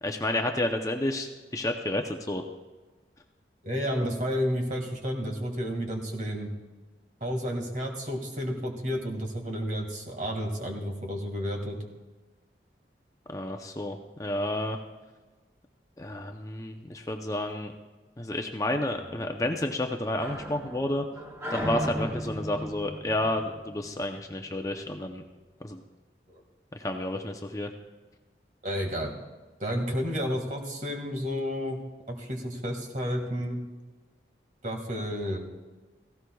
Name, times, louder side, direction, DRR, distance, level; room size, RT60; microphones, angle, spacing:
voice 1, 0.0-2.4 13.3-14.8 16.0-17.7 18.2-21.0 21.5-25.2 25.6-25.8 26.8-27.7, left 1 dB, 20° left, 4 dB, 0.6 m, -30 dB
voice 2, 3.6-6.5 7.2-11.8 26.3-26.4 28.6-29.1 29.6-31.8 32.1-33.6 34.6-35.4, equal, 45° right, 2 dB, 1.9 m, -31 dB
sound 1, 19.0-24.4, equal, 15° right, 1.2 m, -37 dB
17.5 x 15.5 x 2.3 m, 1.3 s
head